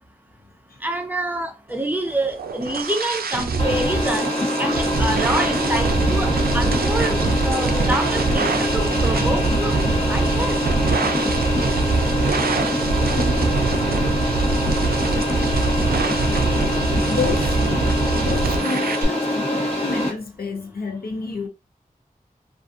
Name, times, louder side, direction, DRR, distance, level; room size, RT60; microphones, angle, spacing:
voice 1, 0.8-4.3 4.6-9.8 10.0-10.6, right 1 dB, 10° right, 0.5 m, -27 dB
sound 1, 2.1-19.1, right 3 dB, 85° right, 0.4 m, -23 dB
sound 2, 3.6-20.1, left 1 dB, 40° left, 1.0 m, -24 dB
voice 2, 13.1-13.5 17.0-21.5, left 4 dB, 85° left, 0.6 m, -30 dB
2.4 x 2.4 x 2.5 m
wide cardioid pair, 60°, 15 cm